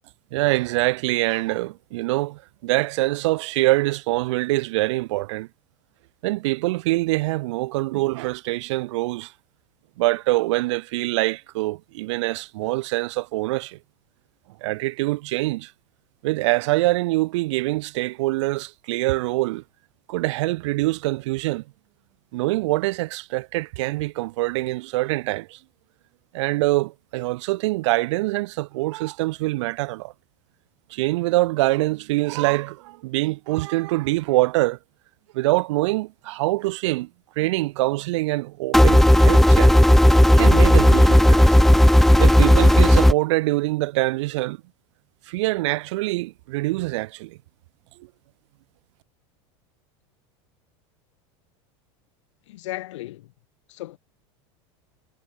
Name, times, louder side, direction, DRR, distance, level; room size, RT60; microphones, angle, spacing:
voice 1, 0.3-5.5 6.2-9.3 10.0-13.8 14.6-15.7 16.2-19.6 20.1-21.6 22.3-25.6 26.3-30.1 30.9-34.8 35.3-37.1 37.4-39.8 40.3-41.5 42.2-44.6 45.3-47.4, right 20 dB, 75° right, 1.3 m, -24 dB
sound 1, 38.7-43.1, left 1 dB, ahead, 0.6 m, -13 dB
voice 2, 52.5-53.3 53.7-54.0, left 16 dB, 80° left, 4.0 m, -35 dB
supercardioid pair, 115°, 15 cm